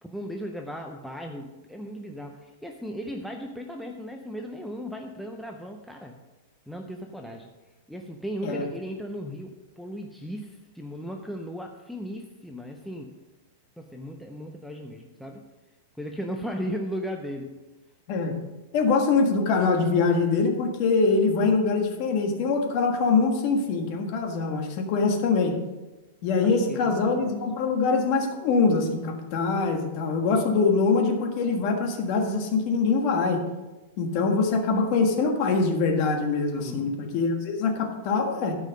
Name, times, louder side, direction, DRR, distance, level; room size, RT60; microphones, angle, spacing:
voice 1, 0.0-6.2 6.7-7.5 7.9-13.1 13.8-15.5 16.0-17.6 26.4-27.3 36.6-37.0, equal, ahead, 2 dB, 0.5 m, -36 dB
voice 2, 18.7-25.6 26.2-33.4 34.0-38.6, left 4 dB, 35° left, 3 dB, 1.5 m, -23 dB
13.0 x 5.5 x 5.2 m, 1.1 s
supercardioid pair, 175°, 0 cm